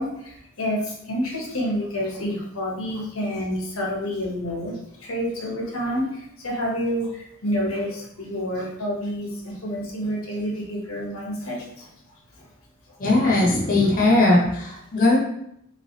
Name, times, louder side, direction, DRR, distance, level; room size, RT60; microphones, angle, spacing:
voice 1, 0.0-11.9 12.4-12.5, equal, 85° left, -2 dB, 1.1 m, -28 dB
voice 2, 13.0-15.2, left 2 dB, 40° left, -3 dB, 0.7 m, -19 dB
3.5 x 3.2 x 2.8 m, 0.76 s
head